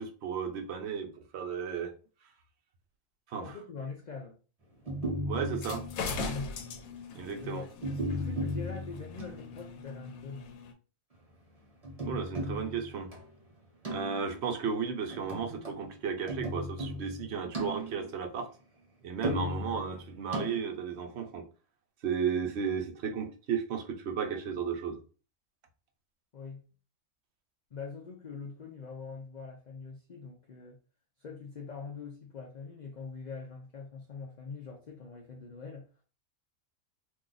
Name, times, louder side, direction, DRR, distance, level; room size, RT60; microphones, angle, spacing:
voice 1, 0.0-1.9 3.3-3.5 5.2-5.8 7.1-7.7 12.0-13.1 13.9-18.5 19.0-21.5 22.0-25.0, right 6 dB, 60° right, 0.8 m, -34 dB
voice 2, 3.4-4.4 6.2-6.6 7.0-7.7 8.1-10.5 26.3-26.6 27.7-30.8 31.2-35.9, left 5 dB, 70° left, 0.4 m, -43 dB
sound 1, 4.9-6.7 7.8-9.5 11.8-13.3 13.8-14.5 15.1-15.8 16.3-18.3 19.2-20.8, equal, 30° right, 1.0 m, -36 dB
sound 2, 5.5-10.7, left 4 dB, 85° left, 1.0 m, -41 dB
2.6 x 2.4 x 3.8 m
omnidirectional pair, 1.4 m